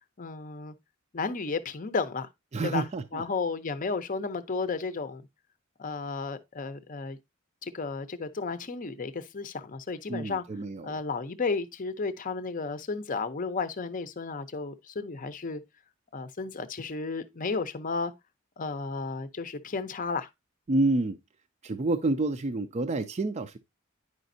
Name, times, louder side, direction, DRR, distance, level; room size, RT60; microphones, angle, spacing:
voice 1, 0.2-0.7 1.1-2.3 2.6-5.2 5.8-7.2 7.6-10.4 10.8-15.6 16.1-18.1 18.6-20.3, left 4 dB, 40° left, 0.6 m, -33 dB
voice 2, 2.5-3.2 10.1-11.0 20.7-21.2 21.6-23.6, right 2 dB, 35° right, 0.4 m, -28 dB
9.6 x 5.1 x 2.6 m
head